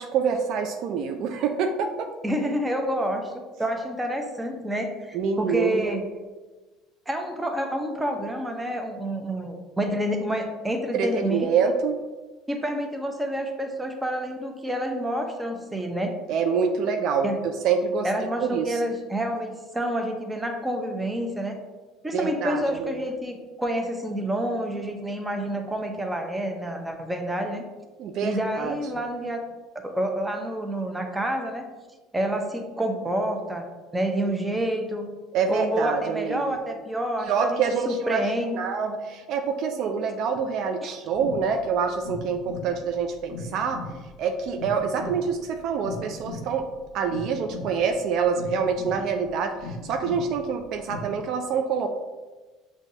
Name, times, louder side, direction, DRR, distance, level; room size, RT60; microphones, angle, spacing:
voice 1, 0.0-2.1 5.1-6.0 10.9-12.0 16.3-18.1 18.4-18.8 22.1-23.0 28.0-28.8 35.3-36.5 37.2-38.3 38.6-43.8 44.2-46.7 46.9-51.9, right 6 dB, 60° right, 5 dB, 0.3 m, -26 dB
voice 2, 2.2-6.0 7.1-11.5 12.5-16.2 17.2-17.4 18.0-21.6 22.0-27.6 28.2-29.5 29.8-31.7 32.1-33.7 33.9-35.1 35.5-38.6 40.8-40.9, right 1 dB, 10° right, 4 dB, 0.7 m, -28 dB
sound 1, 41.1-51.2, left 2 dB, 85° left, 0.5 m, -39 dB
6.0 x 2.3 x 2.7 m, 1.2 s
hypercardioid pair, 75°, 0 cm